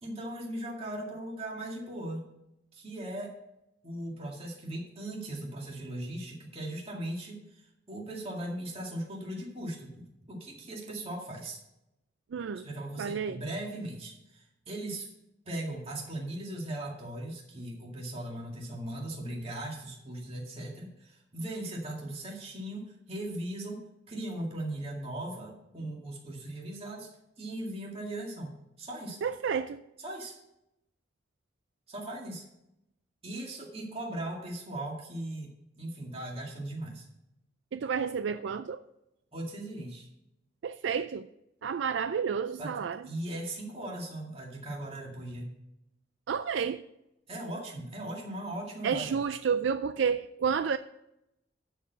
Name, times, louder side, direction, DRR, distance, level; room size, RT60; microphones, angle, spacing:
voice 1, 0.0-2.3 2.7-3.4 3.8-11.6 12.5-15.1 15.5-28.5 28.8-29.2 30.0-30.4 31.9-32.5 33.2-35.5 35.8-37.1 39.3-40.1 42.6-42.7 43.0-45.5 47.3-49.2, right 1 dB, 30° right, -2 dB, 2.1 m, -38 dB
voice 2, 12.3-12.7 13.0-13.4 29.2-29.8 37.7-38.8 40.6-41.3 41.6-43.0 46.3-46.8 48.8-50.8, right 6 dB, 70° right, 11 dB, 0.4 m, -30 dB
12.5 x 4.6 x 6.7 m, 0.84 s
head